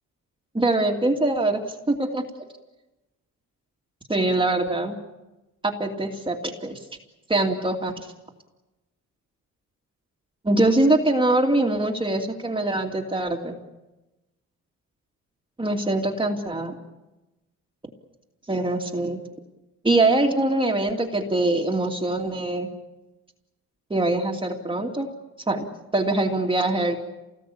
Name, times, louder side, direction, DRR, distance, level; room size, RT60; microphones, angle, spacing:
voice 1, 0.5-1.6 1.9-2.2 4.1-5.0 5.6-6.8 7.3-7.9 10.4-13.5 15.6-16.7 18.5-19.2 19.8-22.7 23.9-25.1 25.5-25.7 25.9-27.0, right 2 dB, 15° right, 2 dB, 2.6 m, -23 dB
28.0 x 19.0 x 8.6 m, 1.1 s
cardioid pair, 90°, 30 cm